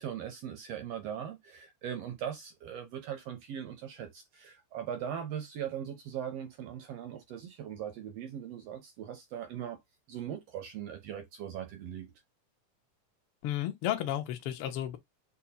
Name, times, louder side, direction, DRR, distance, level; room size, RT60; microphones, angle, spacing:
voice 1, 0.0-9.8 10.1-12.1, right 9 dB, 75° right, 1.4 m, -40 dB
voice 2, 13.4-15.0, left 12 dB, 75° left, 1.2 m, -33 dB
6.6 x 2.3 x 2.8 m
omnidirectional pair, 3.5 m